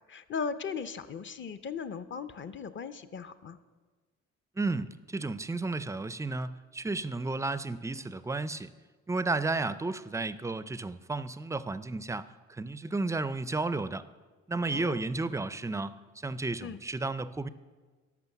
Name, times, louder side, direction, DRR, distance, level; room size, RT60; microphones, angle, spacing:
voice 1, 0.1-3.6 14.7-15.0 16.6-16.8, left 5 dB, 40° left, 12 dB, 0.6 m, -37 dB
voice 2, 4.6-8.7 9.1-14.0 14.5-17.5, right 3 dB, 10° right, 15 dB, 0.4 m, -33 dB
12.0 x 6.0 x 7.0 m, 1.4 s
cardioid pair, 90°, 30 cm